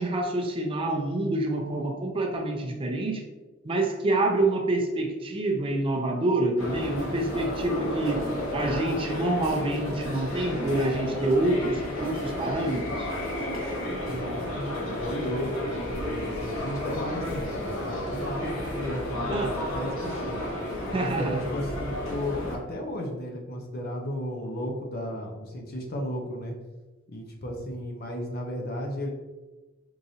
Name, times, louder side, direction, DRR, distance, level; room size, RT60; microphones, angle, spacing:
voice 1, 0.0-3.3 3.6-8.2 8.5-13.1 19.3-19.5 20.9-21.4, right 2 dB, 25° right, 2 dB, 0.4 m, -27 dB
sound 1, 6.6-22.6, left 1 dB, 85° left, 1.2 m, -32 dB
voice 2, 14.0-20.4 21.1-26.6 27.1-29.1, left 1 dB, 50° left, 1 dB, 0.6 m, -34 dB
4.6 x 2.6 x 2.7 m, 1.2 s
head